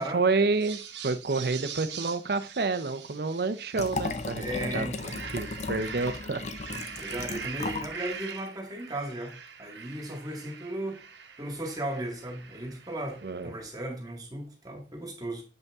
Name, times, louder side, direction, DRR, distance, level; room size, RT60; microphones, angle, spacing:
voice 1, 0.0-4.4 4.7-6.4 6.9-7.0 13.2-13.5, right 3 dB, 60° right, 0.6 m, -29 dB
sound 1, 0.5-4.4 4.8-13.5, right 7 dB, 80° right, 1.1 m, -43 dB
Liquid, 3.7-8.0 8.3-8.4, left 3 dB, 40° left, 0.6 m, -35 dB
voice 2, 4.4-5.2 7.0-11.0 11.4-15.4, right 1 dB, 20° right, 1.9 m, -36 dB
7.4 x 5.3 x 3.6 m
head